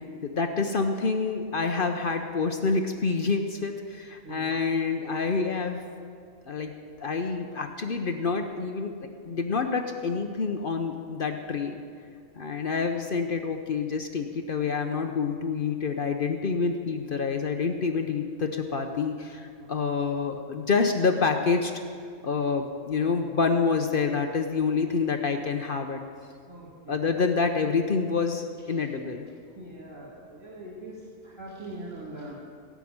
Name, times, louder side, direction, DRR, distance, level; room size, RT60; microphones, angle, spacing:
voice 1, 0.2-5.8 6.5-6.7 7.0-8.9 9.2-11.8 12.3-21.7 22.2-26.0 26.9-29.2, left 5 dB, 50° left, 5 dB, 0.9 m, -27 dB
voice 2, 26.5-26.9 28.7-28.9 29.5-32.3, right 1 dB, 20° right, -8 dB, 2.5 m, -42 dB
18.0 x 6.1 x 8.6 m, 2.3 s
omnidirectional pair, 1.3 m